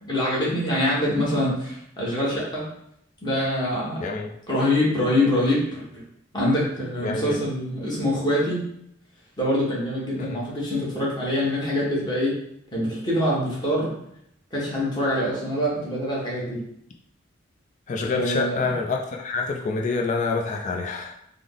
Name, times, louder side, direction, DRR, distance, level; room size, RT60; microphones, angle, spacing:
voice 1, 0.0-2.6 3.2-4.0 4.5-5.8 6.3-8.6 9.4-12.3 12.7-13.9 14.5-16.6 18.1-18.6, left 1 dB, 20° left, -6 dB, 1.2 m, -24 dB
voice 2, 4.0-4.3 7.0-7.4 10.2-10.4 17.9-21.1, left 4 dB, 40° left, 2 dB, 0.3 m, -27 dB
3.5 x 2.0 x 3.7 m, 0.74 s
head